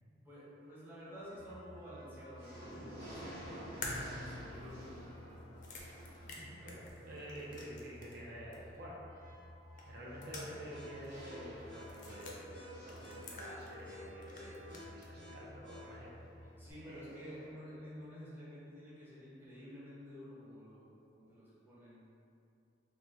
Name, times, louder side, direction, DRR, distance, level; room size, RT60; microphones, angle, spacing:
voice 1, 0.2-5.1 16.6-20.8 21.1-22.0, equal, 10° right, -10 dB, 0.8 m, -51 dB
sound 1, 1.2-1.7 2.1-17.5, right 1 dB, 40° right, 1.2 m, -54 dB
sound 2, 1.4-16.7, left 1 dB, 90° right, 1.1 m, -54 dB
sound 3, 3.8-8.3 8.5-8.6 9.8-10.8 11.0-11.1 11.8-12.4 12.9-14.0 14.2-15.1, left 2 dB, 45° left, 0.4 m, -47 dB
voice 2, 6.3-9.0 9.8-16.2 16.8-17.0, equal, 55° right, -3 dB, 0.5 m, -49 dB
2.8 x 2.1 x 3.7 m, 2.6 s
head